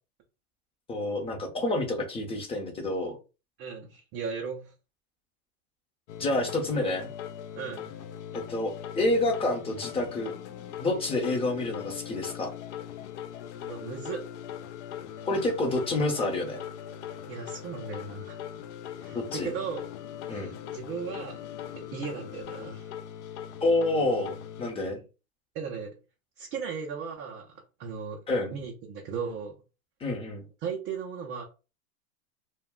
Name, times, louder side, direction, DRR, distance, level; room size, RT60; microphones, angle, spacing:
voice 1, 0.9-3.2 6.2-7.1 8.3-10.3 10.8-12.5 15.3-16.6 19.1-19.5 20.3-20.5 23.6-25.0 28.3-28.5 30.0-30.4, left 2 dB, 15° left, 1 dB, 0.7 m, -28 dB
voice 2, 3.6-4.7 7.5-8.0 13.6-14.2 17.3-18.4 19.0-19.9 20.3-21.4 21.8-22.9 24.9-25.0 25.5-25.9 26.4-28.2 28.5-29.5 30.6-31.4, right 6 dB, 25° right, -1 dB, 0.4 m, -37 dB
sound 1, 6.1-24.7, left 10 dB, 55° left, 0.4 m, -40 dB
2.2 x 2.2 x 3.6 m, 0.31 s
hypercardioid pair, 120°, 44 cm